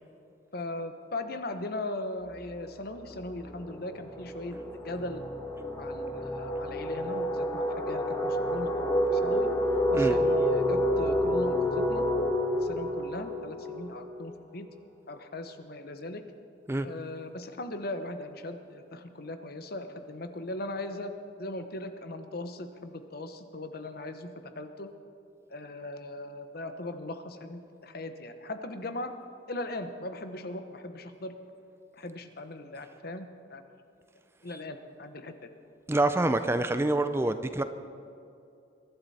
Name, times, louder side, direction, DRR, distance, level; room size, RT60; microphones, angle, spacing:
voice 1, 0.5-4.6 4.8-5.2 5.8-9.5 9.9-12.0 12.5-14.7 15.1-16.2 16.8-21.1 21.4-24.3 24.6-24.9 25.5-29.1 29.5-31.3 31.9-33.6 34.4-35.3, left 2 dB, 55° left, 8 dB, 1.0 m, -39 dB
sound 1, 2.4-2.6 2.9-14.5, equal, 15° left, 1.4 m, -29 dB
voice 2, 35.9-37.6, right 2 dB, 15° right, 10 dB, 0.5 m, -26 dB
22.5 x 12.0 x 4.3 m, 2.6 s
head